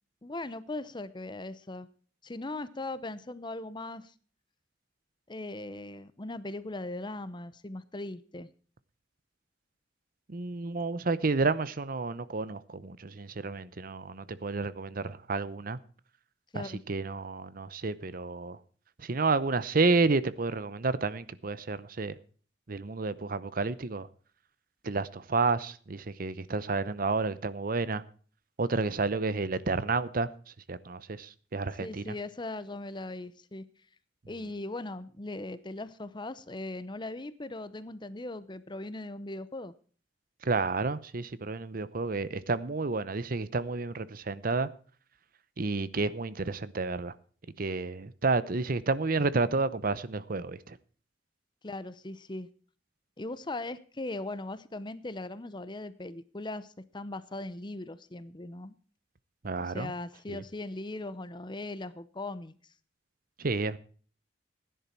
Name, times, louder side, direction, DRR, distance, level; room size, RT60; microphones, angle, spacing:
voice 1, 0.2-1.9 2.2-4.1 5.3-8.5 16.5-16.8 31.8-33.6 34.3-39.7 51.6-52.5 53.2-58.7 59.6-62.5, left 2 dB, 25° left, 0.8 m, -39 dB
voice 2, 10.3-15.8 16.5-18.6 19.0-22.2 22.7-24.1 24.8-28.0 28.6-30.3 30.7-32.0 40.4-44.7 45.6-47.1 47.6-50.8 59.4-59.9 60.3-60.4 63.4-63.8, right 3 dB, 50° right, 0.8 m, -30 dB
16.0 x 10.5 x 4.5 m
head